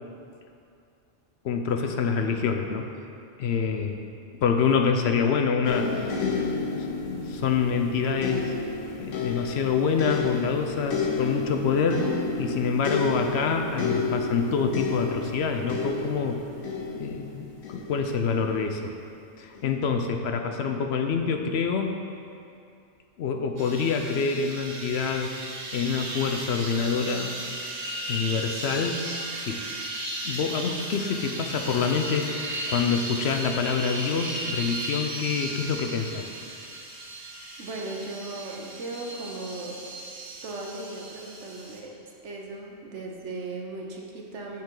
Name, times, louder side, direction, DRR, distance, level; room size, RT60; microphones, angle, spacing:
voice 1, 1.4-2.9 3.4-4.0 4.4-8.4 9.0-12.1 12.4-16.4 17.0-18.9 19.4-21.9 23.2-25.3 25.7-27.4 28.1-29.0 29.3-29.7 30.2-36.3, left 5 dB, 65° left, 5 dB, 0.8 m, -26 dB
sound 1, 5.6-18.7 19.5-19.7, left 4 dB, 85° left, 1.3 m, -31 dB
sound 2, 23.6-41.8, right 1 dB, 55° right, 1.2 m, -36 dB
voice 2, 37.6-39.8 40.4-41.9 42.2-44.6, right 2 dB, 70° right, 0 dB, 1.3 m, -37 dB
8.9 x 7.3 x 3.8 m, 2.6 s
omnidirectional pair, 1.3 m